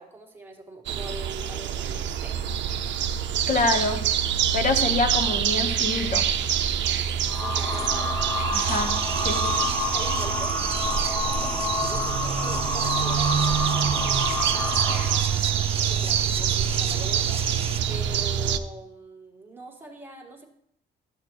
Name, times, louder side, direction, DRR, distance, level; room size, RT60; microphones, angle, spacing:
voice 1, 0.0-2.4 7.4-8.5 9.9-20.5, right 2 dB, 10° right, -1 dB, 1.9 m, -42 dB
sound 1, 0.9-18.6, right 9 dB, 65° right, 0.6 m, -26 dB
voice 2, 3.5-4.0 4.5-6.3 8.5-9.7, left 3 dB, 40° left, 6 dB, 1.3 m, -26 dB
sound 2, 7.3-15.3, left 3 dB, 15° left, 0.9 m, -29 dB
sound 3, 8.5-17.8, right 5 dB, 30° right, 0.7 m, -33 dB
13.0 x 6.7 x 3.2 m, 0.71 s
cardioid pair, 90°, 20 cm